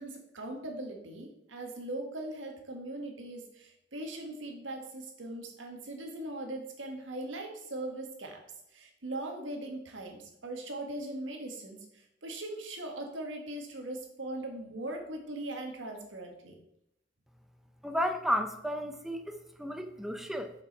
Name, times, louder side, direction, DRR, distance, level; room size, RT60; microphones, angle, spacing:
voice 1, 0.0-8.4 8.7-16.6, right 1 dB, 80° right, 2 dB, 1.7 m, -40 dB
voice 2, 17.8-20.5, equal, ahead, 6 dB, 0.5 m, -33 dB
7.0 x 5.3 x 5.4 m, 0.80 s
head